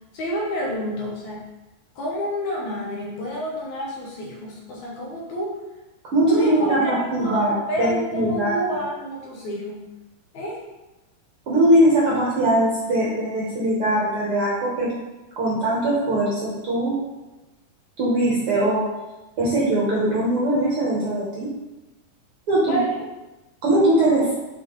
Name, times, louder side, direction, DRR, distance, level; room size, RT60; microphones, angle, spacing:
voice 1, 0.1-1.5 2.0-5.6 6.2-9.9 10.3-10.6 22.7-22.9, equal, 65° left, -3 dB, 2.3 m, -29 dB
voice 2, 6.1-8.5 11.5-14.9 15.4-17.0 18.0-18.8 19.4-21.5 22.5-22.8 23.6-24.3, right 1 dB, 55° right, -6 dB, 1.6 m, -21 dB
6.6 x 4.8 x 3.8 m, 1.1 s
omnidirectional pair, 3.9 m